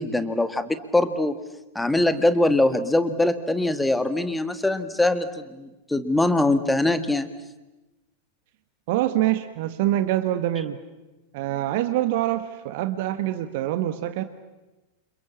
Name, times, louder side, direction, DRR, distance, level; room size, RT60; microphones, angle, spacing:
voice 1, 0.0-1.4 1.8-7.3, left 2 dB, 5° left, 11 dB, 1.8 m, -22 dB
voice 2, 8.9-10.8 11.3-14.2, right 13 dB, 50° right, 11 dB, 1.4 m, -25 dB
29.5 x 27.0 x 7.3 m, 1.1 s
figure-of-eight pair, 90°, 0 cm